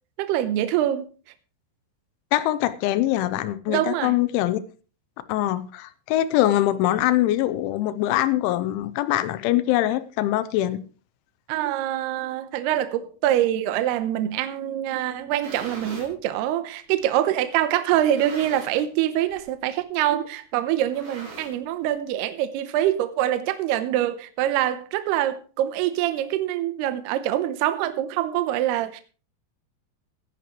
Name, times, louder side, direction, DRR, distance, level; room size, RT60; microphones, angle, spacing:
voice 1, 0.2-1.1 3.7-4.1 11.5-29.0, right 12 dB, 80° right, 2.4 m, -25 dB
voice 2, 2.3-4.6 5.3-10.8, left 14 dB, 85° left, 3.1 m, -23 dB
sound 1, 15.1-16.2 16.9-17.0 17.9-18.9 19.2-19.5 19.8-19.9 20.8-21.9, right 2 dB, 60° right, 5.5 m, -40 dB
17.0 x 10.0 x 3.1 m
omnidirectional pair, 5.5 m